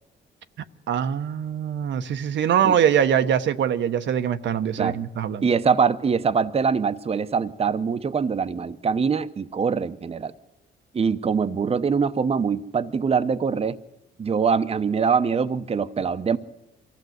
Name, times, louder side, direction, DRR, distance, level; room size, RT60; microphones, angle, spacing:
voice 1, 0.9-5.5, right 9 dB, 65° right, 0.9 m, -23 dB
voice 2, 5.4-10.3 10.9-13.8 14.2-16.4, right 6 dB, 30° right, 0.8 m, -23 dB
23.5 x 15.0 x 7.9 m
cardioid pair, 90°, 20 cm